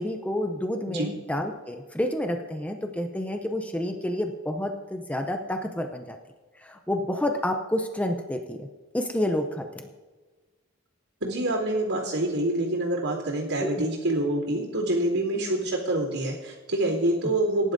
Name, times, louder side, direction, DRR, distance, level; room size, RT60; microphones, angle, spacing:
voice 1, 0.0-6.2 6.6-8.7 8.9-9.8 13.6-13.8, left 1 dB, 5° left, 5 dB, 0.5 m, -29 dB
voice 2, 11.2-17.7, right 1 dB, 90° right, -11 dB, 2.9 m, -26 dB
19.5 x 11.0 x 2.7 m, 1.3 s
head